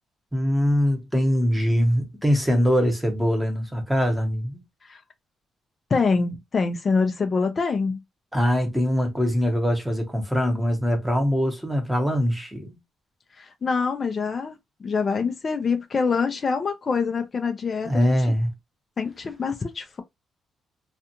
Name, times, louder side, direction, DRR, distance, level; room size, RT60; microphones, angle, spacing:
voice 1, 0.3-4.6 8.3-12.8 17.8-18.5, equal, 5° right, 1.0 m, -22 dB
voice 2, 5.9-8.0 13.4-18.3 19.0-20.0, left 5 dB, 40° left, 0.5 m, -25 dB
2.5 x 2.2 x 2.8 m
cardioid pair, 90°, 0 cm